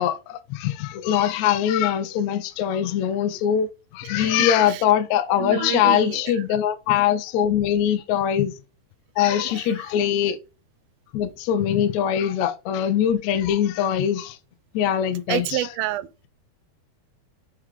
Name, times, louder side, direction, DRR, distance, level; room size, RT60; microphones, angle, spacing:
voice 1, 0.0-8.5 9.2-10.4 11.1-14.4 14.7-15.7, left 10 dB, 85° left, 1.6 m, -22 dB
voice 2, 4.1-4.8 5.4-6.3 9.3-9.7 15.3-16.1, right 14 dB, 80° right, 2.3 m, -29 dB
6.4 x 4.6 x 3.6 m
omnidirectional pair, 4.3 m